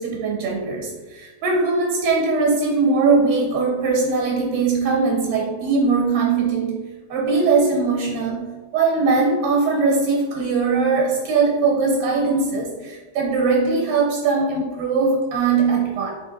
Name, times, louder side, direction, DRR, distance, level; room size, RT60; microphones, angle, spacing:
voice 1, 0.0-6.8 7.1-16.1, right 4 dB, 85° right, -1 dB, 1.3 m, -20 dB
3.3 x 2.7 x 3.7 m, 1.2 s
omnidirectional pair, 1.8 m